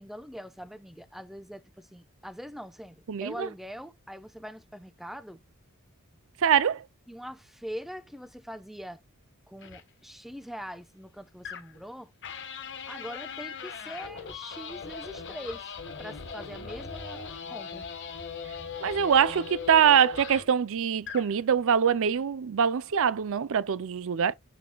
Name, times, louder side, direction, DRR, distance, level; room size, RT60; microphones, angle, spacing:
voice 1, 0.0-5.4 7.1-9.0 9.5-12.1 12.9-15.7 16.0-17.9, equal, ahead, 0.8 m, -42 dB
voice 2, 3.1-3.5 6.4-6.9 18.8-24.3, right 7 dB, 65° right, 0.5 m, -24 dB
sound 1, 9.6-9.8 11.4-11.8 12.2-20.6 21.0-21.3, left 6 dB, 55° left, 1.5 m, -39 dB
7.3 x 6.8 x 2.3 m
head